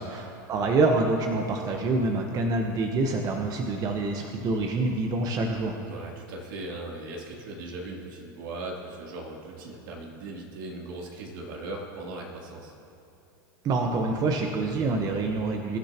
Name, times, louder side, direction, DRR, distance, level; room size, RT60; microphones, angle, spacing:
voice 1, 0.0-5.8 13.6-15.8, right 3 dB, 35° right, 2 dB, 1.2 m, -26 dB
voice 2, 5.8-12.7, right 2 dB, 70° right, -2 dB, 3.2 m, -38 dB
23.0 x 11.5 x 3.0 m, 2.7 s
hypercardioid pair, 115°, 11 cm